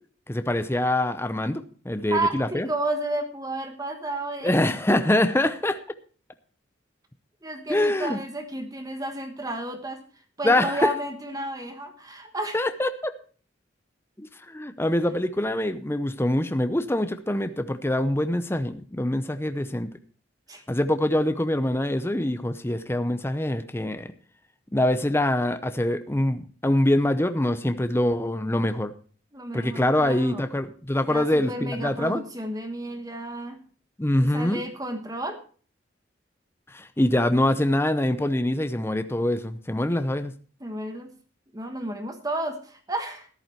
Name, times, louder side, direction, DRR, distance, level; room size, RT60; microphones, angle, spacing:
voice 1, 0.3-2.7 4.4-5.8 7.7-8.2 10.4-10.9 12.5-13.1 14.2-19.9 20.7-24.1 24.7-28.9 29.5-32.2 34.0-34.6 36.7-40.3, left 1 dB, 10° left, 9 dB, 0.7 m, -24 dB
voice 2, 2.1-4.6 7.4-10.0 10.4-12.7 20.5-20.6 29.3-30.4 31.1-33.6 34.2-35.4 40.6-41.1 41.5-43.3, right 1 dB, 20° right, 6 dB, 1.3 m, -32 dB
13.5 x 11.0 x 4.4 m, 0.41 s
head